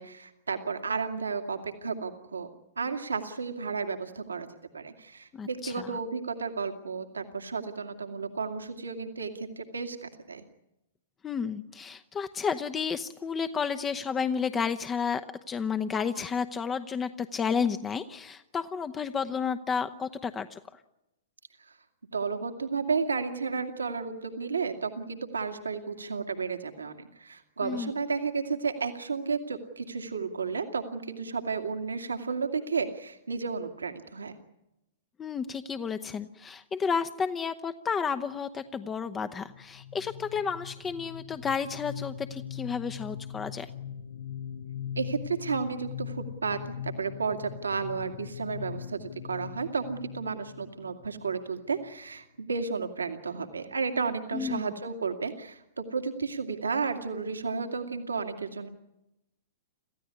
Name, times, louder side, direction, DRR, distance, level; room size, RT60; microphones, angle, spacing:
voice 1, 0.0-2.5 2.8-4.5 4.7-10.4 21.7-21.8 22.1-34.3 45.0-58.7, right 5 dB, 80° right, 5 dB, 2.2 m, -32 dB
voice 2, 5.3-5.9 11.2-15.2 15.5-20.6 27.6-27.9 35.2-43.7 54.3-54.6, left 6 dB, 20° left, 10 dB, 0.9 m, -31 dB
sound 1, 39.5-51.9, left 9 dB, 60° left, 1.1 m, -41 dB
27.5 x 15.5 x 9.8 m, 0.93 s
figure-of-eight pair, 110°, 0 cm